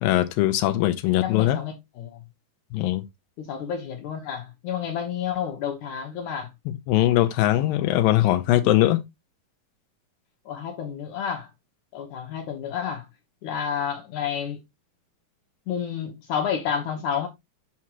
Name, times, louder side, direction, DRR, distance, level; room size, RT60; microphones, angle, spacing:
voice 1, 0.0-1.6 2.7-3.0 6.9-9.0, left 15 dB, 90° left, 2.4 m, -21 dB
voice 2, 1.2-2.2 3.4-6.5 10.5-11.5 11.9-13.1 13.4-14.6 15.7-17.3, left 8 dB, 70° left, 2.1 m, -30 dB
6.0 x 5.9 x 2.8 m
omnidirectional pair, 4.1 m